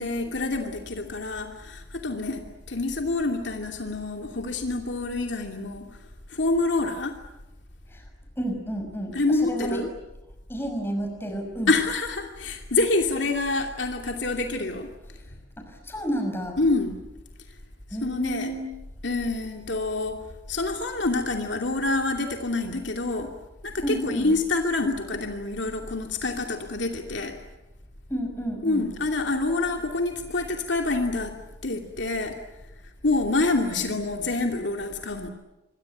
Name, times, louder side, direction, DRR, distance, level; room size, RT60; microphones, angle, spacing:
voice 1, 0.0-5.9 6.3-7.2 9.1-9.9 11.7-14.9 16.6-17.0 18.0-18.5 19.0-20.2 20.5-23.3 23.6-27.3 28.6-31.3 31.6-32.4 33.0-35.3, left 2 dB, 65° left, 3 dB, 2.6 m, -27 dB
voice 2, 8.4-9.8 10.5-11.7 15.6-16.6 17.9-18.8 23.8-24.3 28.1-28.9, right 1 dB, 10° left, 4 dB, 6.0 m, -31 dB
26.5 x 22.5 x 9.0 m, 0.97 s
head